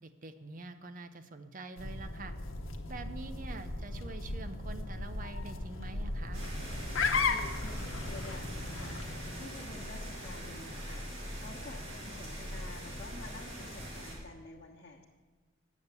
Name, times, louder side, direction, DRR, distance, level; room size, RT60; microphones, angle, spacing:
voice 1, 0.0-2.3 2.9-6.4, right 2 dB, 40° right, 10 dB, 0.6 m, -46 dB
sound 1, 1.8-9.8, left 3 dB, 80° left, 1.0 m, -36 dB
sound 2, 6.3-14.1, equal, 75° right, 4.4 m, -42 dB
voice 2, 7.2-9.1 9.4-15.1, left 2 dB, 50° left, -4 dB, 1.2 m, -50 dB
9.5 x 7.3 x 8.0 m, 1.4 s
head